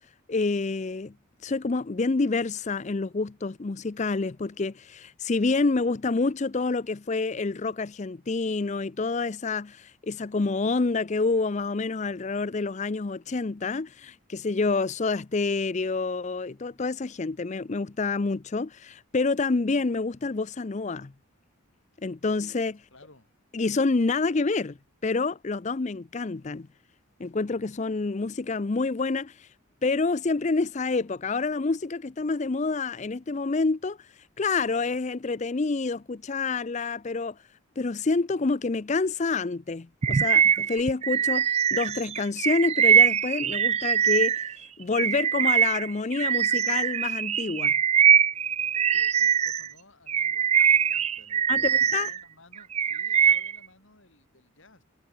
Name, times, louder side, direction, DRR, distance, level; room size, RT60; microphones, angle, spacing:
voice 1, 0.3-1.1 1.4-21.1 22.0-22.8 23.5-24.8 25.0-26.7 27.2-29.5 29.8-34.1 34.4-37.4 37.8-44.4 44.8-47.7 51.5-52.1, left 3 dB, 35° left, 0.5 m, -28 dB
voice 2, 22.9-23.3 48.9-54.8, left 2 dB, 65° left, 7.1 m, -56 dB
Bird vocalization bird call bird song, 40.0-44.5 44.9-49.7 50.1-52.2 52.5-53.6, right 8 dB, 30° right, 0.3 m, -22 dB
head